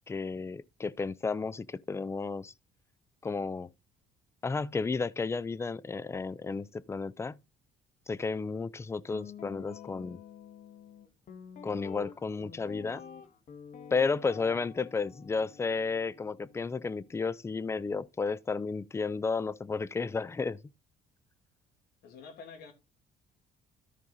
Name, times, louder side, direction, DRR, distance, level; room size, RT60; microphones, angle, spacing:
voice 1, 0.1-2.5 3.2-3.7 4.4-7.4 8.1-10.2 11.6-13.0 13.9-20.6, left 4 dB, 15° left, 0.5 m, -32 dB
Guitar, 9.1-17.3, left 7 dB, 50° left, 1.9 m, -49 dB
voice 2, 22.0-22.7, left 5 dB, 70° left, 3.1 m, -47 dB
13.0 x 5.3 x 4.0 m
cardioid pair, 110°, 17 cm